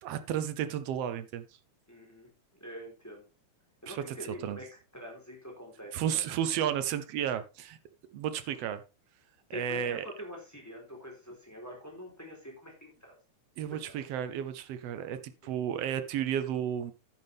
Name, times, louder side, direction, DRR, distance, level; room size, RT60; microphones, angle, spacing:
voice 1, 0.0-1.4 3.9-4.0 4.4-4.6 5.9-7.8 8.1-8.8 9.5-10.0 13.6-16.9, right 9 dB, 75° right, 1.5 m, -32 dB
voice 2, 1.9-2.3 2.6-3.3 3.8-4.7 4.9-6.0 9.5-13.2 13.7-13.8 15.4-15.6, equal, 5° left, 3.6 m, -45 dB
10.5 x 9.4 x 3.5 m
omnidirectional pair, 3.5 m